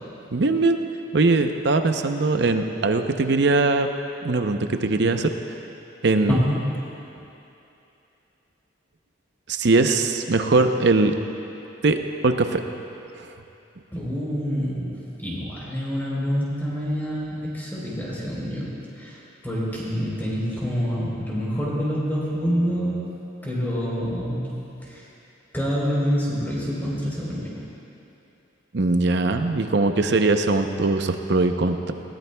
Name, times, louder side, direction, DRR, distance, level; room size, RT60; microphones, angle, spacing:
voice 1, 0.3-0.8 1.1-3.9 4.2-5.3 6.0-6.4 9.5-11.1 11.8-12.0 12.2-12.6 28.7-31.9, right 3 dB, 60° right, 7 dB, 0.7 m, -21 dB
voice 2, 13.9-14.9 15.2-23.0 23.4-24.5 24.8-25.0 25.5-27.5, equal, 10° left, -6 dB, 3.7 m, -26 dB
20.0 x 18.5 x 2.3 m, 2.8 s
head